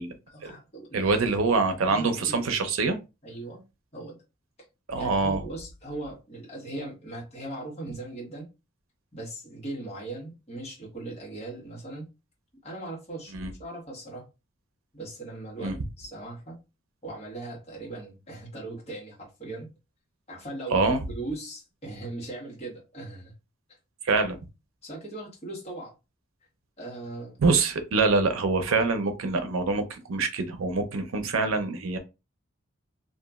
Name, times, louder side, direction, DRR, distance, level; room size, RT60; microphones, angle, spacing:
voice 1, 0.3-1.2 1.9-2.4 3.2-3.6 3.9-4.2 4.9-8.5 9.1-12.1 12.6-13.3 13.6-14.3 14.9-16.6 17.0-19.7 20.3-23.3 24.8-25.9 26.8-27.4, right 2 dB, 30° left, 1.2 m, -39 dB
voice 2, 0.9-3.0 4.9-5.4 13.3-13.5 15.6-15.7 20.7-21.0 24.0-24.4 27.4-32.0, right 3 dB, 90° right, 0.6 m, -25 dB
2.9 x 2.4 x 2.3 m
head